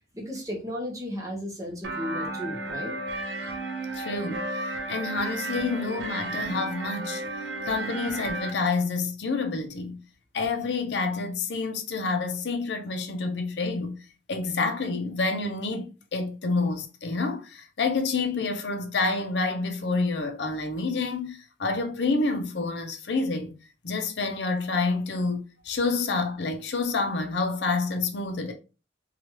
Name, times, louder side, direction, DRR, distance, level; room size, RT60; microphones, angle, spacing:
voice 1, 0.1-2.9, left 1 dB, 20° right, 0.8 m, -34 dB
sound 1, 1.8-8.5, right 2 dB, 75° right, 0.6 m, -33 dB
voice 2, 3.9-7.2 7.6-10.0 10.3-14.0 14.3-15.8 16.1-23.5 23.8-28.5, left 3 dB, 65° left, 0.5 m, -28 dB
2.9 x 2.3 x 2.9 m
head